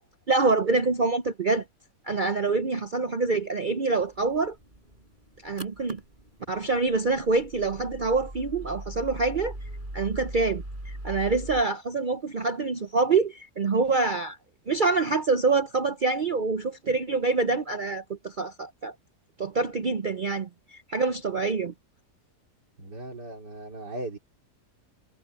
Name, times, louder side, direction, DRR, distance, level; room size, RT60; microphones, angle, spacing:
voice 1, 0.3-1.6 2.1-4.6 5.4-6.0 6.5-9.6 9.9-14.4 14.7-18.9 19.4-21.7, right 3 dB, 50° right, 0.5 m, -26 dB
sound 1, 4.0-11.6, right 1 dB, 30° right, 8.2 m, -41 dB
voice 2, 22.8-24.2, right 1 dB, 90° right, 4.3 m, -37 dB
omnidirectional pair, 1.8 m